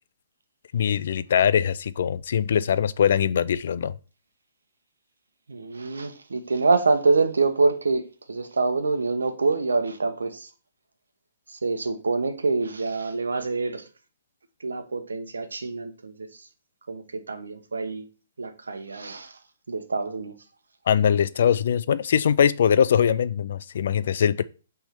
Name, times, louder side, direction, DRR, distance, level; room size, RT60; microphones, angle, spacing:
voice 1, 0.7-3.9 20.9-24.4, left 8 dB, 60° left, 0.4 m, -22 dB
voice 2, 5.5-10.5 11.5-13.8 14.6-16.5 16.9-18.0 18.4-19.4 19.7-20.3, right 3 dB, 85° right, 1.1 m, -26 dB
6.0 x 3.5 x 5.8 m
hypercardioid pair, 130°, 0 cm